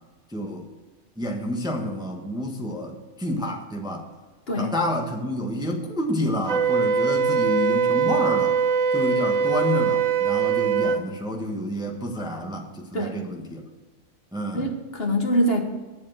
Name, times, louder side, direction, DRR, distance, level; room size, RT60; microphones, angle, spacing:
voice 1, 0.3-0.7 1.2-4.1 4.5-8.6 8.9-13.6 14.3-14.7, left 1 dB, 5° right, 2 dB, 1.2 m, -29 dB
Wind instrument woodwind instrument, 6.5-11.0, right 6 dB, 65° right, 1.3 m, -22 dB
voice 2, 14.5-15.6, equal, 45° left, 3 dB, 1.4 m, -24 dB
10.5 x 7.4 x 7.8 m, 1.3 s
omnidirectional pair, 1.5 m